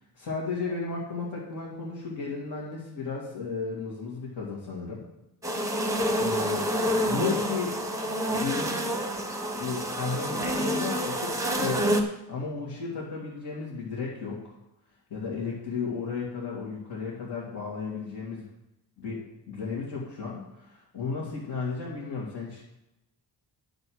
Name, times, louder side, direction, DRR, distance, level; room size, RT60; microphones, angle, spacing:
voice 1, 0.1-5.0 6.2-7.7 8.3-8.8 9.6-14.6 15.1-18.5 19.0-19.2 19.5-22.7, left 4 dB, 65° left, -6 dB, 2.6 m, -34 dB
sound 1, 5.4-12.0, equal, 5° right, 0.9 m, -28 dB
10.5 x 5.2 x 6.4 m, 0.90 s
wide cardioid pair, 175°, 42 cm